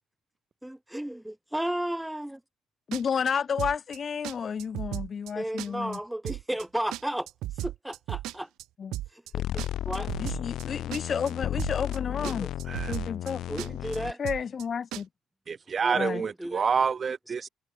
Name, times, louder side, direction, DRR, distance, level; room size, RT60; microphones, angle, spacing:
voice 1, 0.6-2.4 5.4-7.3 7.6-8.5 9.1-10.1 12.2-12.5 13.5-14.2 15.8-16.7, right 1 dB, 5° right, 1.9 m, -34 dB
voice 2, 2.9-6.0 8.8-8.9 10.2-12.5 12.9-13.4 14.2-15.1 15.9-16.2, left 6 dB, 30° left, 1.3 m, -31 dB
sound 1, 2.9-3.3 3.6-4.0 4.2-4.3 4.6-5.3 5.6-6.0 6.2-6.6 6.9-8.6 8.9-9.3 9.6-10.6 10.9-11.3 11.6-12.0 12.2-12.3 12.6-13.3 13.6-14.0 14.2-14.6 14.9-15.0, right 15 dB, 75° right, 1.4 m, -35 dB
sound 2, 9.3-14.1, left 12 dB, 60° left, 1.2 m, -33 dB
voice 3, 15.5-17.5, right 6 dB, 30° right, 0.8 m, -28 dB
cardioid pair, 165°, 0 cm